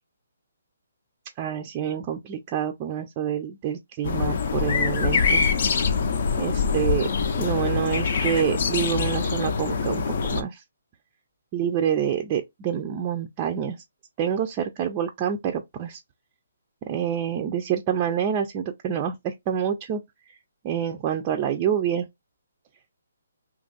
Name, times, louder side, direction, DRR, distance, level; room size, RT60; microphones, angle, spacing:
voice 1, 1.4-5.4 6.4-10.6 11.5-13.8 14.2-16.0 16.8-20.0 20.6-22.1, right 9 dB, 25° right, 0.4 m, -27 dB
sound 1, 4.0-10.4, left 5 dB, 55° left, 0.6 m, -24 dB
2.8 x 2.4 x 3.8 m
hypercardioid pair, 150°, 0 cm